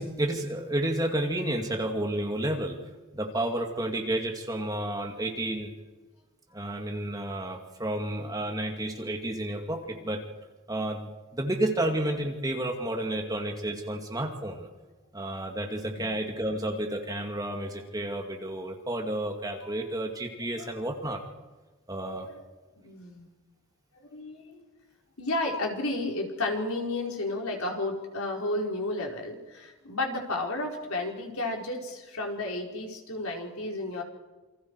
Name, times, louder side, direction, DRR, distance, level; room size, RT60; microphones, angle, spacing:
voice 1, 0.0-2.8 3.1-5.7 6.5-10.2 10.7-14.7 15.1-21.2 21.9-22.3, right 1 dB, 15° right, 2 dB, 2.4 m, -31 dB
voice 2, 22.8-23.3 24.0-24.6 25.2-34.0, left 2 dB, 75° left, 0 dB, 4.6 m, -32 dB
28.0 x 25.0 x 4.8 m, 1.2 s
head